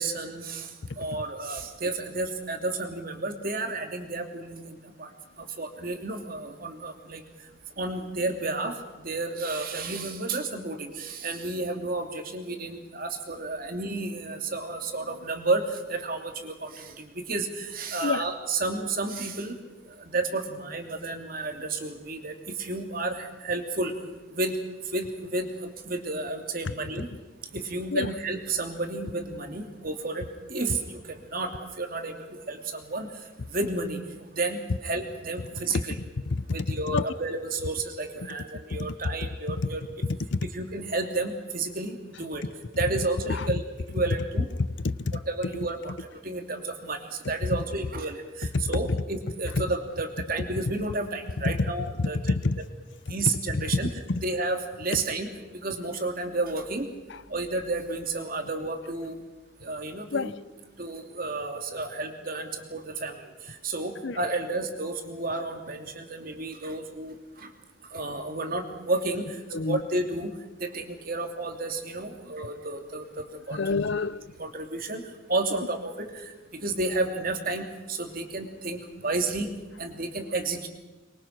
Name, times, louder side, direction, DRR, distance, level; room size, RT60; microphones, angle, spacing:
voice 1, 0.0-0.7 1.0-4.6 5.0-5.1 5.6-7.2 7.8-8.7 9.0-15.6 15.9-19.6 20.1-22.3 22.6-23.9 24.3-24.5 24.9-25.5 25.8-27.1 27.6-31.5 31.8-32.1 32.5-33.1 33.5-34.0 34.3-36.0 36.5-39.8 40.5-42.4 42.8-43.6 43.9-44.5 45.1-45.9 46.2-47.0 47.3-52.2 52.6-52.7 53.1-53.9 54.2-55.3 55.6-56.9 57.3-59.1 59.6-60.3 60.8-63.1 63.6-67.1 67.9-69.3 69.7-70.3 70.6-73.8 74.4-75.0 75.3-76.1 76.6-78.8 79.0-79.5 79.8-80.7, right 2 dB, 45° right, 2.9 m, -31 dB
voice 2, 0.8-1.2 18.0-18.2 27.9-28.1 36.3-37.1 38.8-38.9 39.2-39.3 40.3-40.5 43.3-43.5 44.8-45.1 48.5-49.0 49.5-49.6 51.4-51.7 52.0-52.6 53.5-54.2 57.1-57.2 60.1-60.4 64.0-64.2 69.5-69.8 73.5-74.3, left 3 dB, 60° left, 0.7 m, -28 dB
24.0 x 23.5 x 6.1 m
head